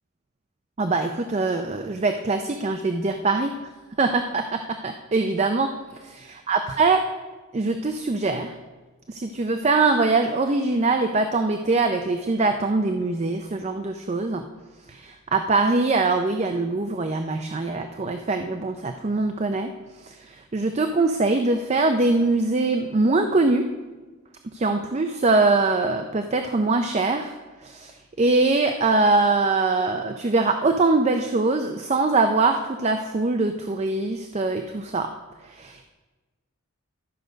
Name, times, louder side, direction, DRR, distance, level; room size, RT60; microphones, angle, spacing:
voice 1, 0.8-3.5 4.0-5.7 6.0-7.0 7.5-8.5 9.1-14.4 14.9-19.7 20.0-23.7 24.5-27.3 27.6-27.9 28.2-35.1 35.5-35.9, right 3 dB, 30° right, 6 dB, 0.4 m, -23 dB
12.5 x 6.5 x 5.1 m, 1.2 s
head